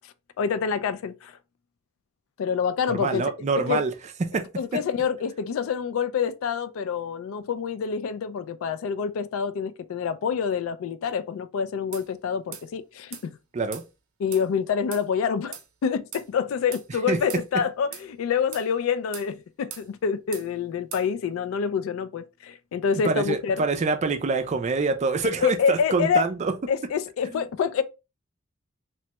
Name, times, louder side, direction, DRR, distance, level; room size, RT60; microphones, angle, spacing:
voice 1, 0.4-1.4 2.4-3.2 3.6-3.8 4.6-13.4 14.2-23.6 25.4-26.3 26.7-27.8, left 6 dB, 70° left, 0.3 m, -27 dB
voice 2, 2.9-3.9 4.3-4.4 13.5-13.8 17.1-17.2 23.0-26.5 27.3-27.4, right 4 dB, 35° right, 0.4 m, -25 dB
sound 1, 11.9-12.1 12.5-12.7 13.1-13.3 13.7-13.9 14.3-14.5 14.9-15.1 15.5-15.7 16.1-16.3 16.7-16.9 17.3-17.5 17.9-18.1 18.5-18.7 19.1-19.3 19.7-19.9 20.3-20.5 20.9-21.1, right 9 dB, 85° right, 0.6 m, -39 dB
3.0 x 2.2 x 2.8 m
head